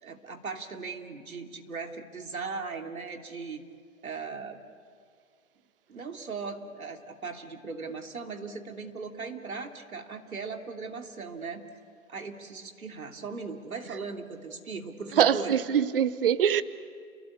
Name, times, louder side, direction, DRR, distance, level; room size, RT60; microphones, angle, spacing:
voice 1, 0.0-3.6 4.0-4.6 5.9-11.6 12.1-15.6, right 4 dB, 75° right, 3.1 m, -38 dB
voice 2, 15.1-16.6, right 9 dB, 40° right, 0.9 m, -23 dB
29.5 x 22.5 x 8.6 m
hypercardioid pair, 150°, 42 cm